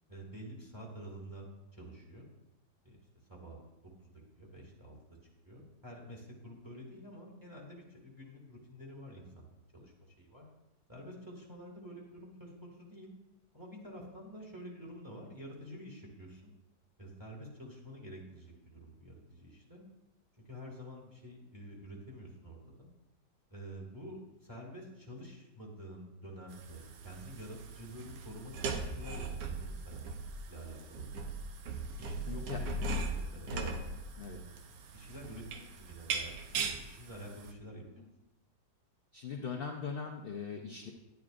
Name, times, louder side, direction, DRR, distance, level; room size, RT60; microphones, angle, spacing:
voice 1, 0.1-2.3 2.8-3.0 3.3-3.6 4.0-5.2 5.4-10.5 10.9-13.1 13.5-16.5 17.0-19.8 20.4-22.9 23.5-30.2 30.5-31.3 32.0-32.8 33.1-33.6 34.3-34.6 34.9-38.1, equal, 10° right, -2 dB, 1.8 m, -49 dB
sound 1, 26.5-37.5, right 3 dB, 85° right, 1.4 m, -39 dB
voice 2, 32.2-32.6 33.5-33.7 34.2-34.4 39.1-40.9, left 5 dB, 55° left, 0 dB, 0.6 m, -40 dB
10.5 x 9.9 x 2.5 m, 0.95 s
omnidirectional pair, 1.8 m